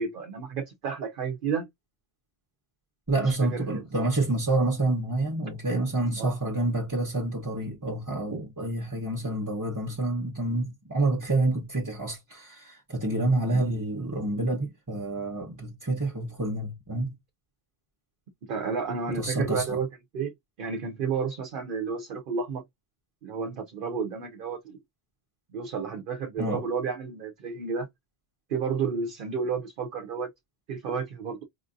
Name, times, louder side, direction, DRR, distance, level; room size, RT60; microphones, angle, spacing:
voice 1, 0.0-1.7 3.2-4.1 6.2-6.3 13.5-13.6 18.5-19.9 20.1-20.3 20.6-22.6 23.2-24.8 25.5-27.9 28.5-30.3 30.7-31.4, right 5 dB, 60° right, 0.7 m, -31 dB
voice 2, 3.1-17.1 19.1-19.8 26.4-26.7, right 2 dB, 20° right, 0.8 m, -28 dB
4.9 x 2.5 x 2.5 m
omnidirectional pair, 1.1 m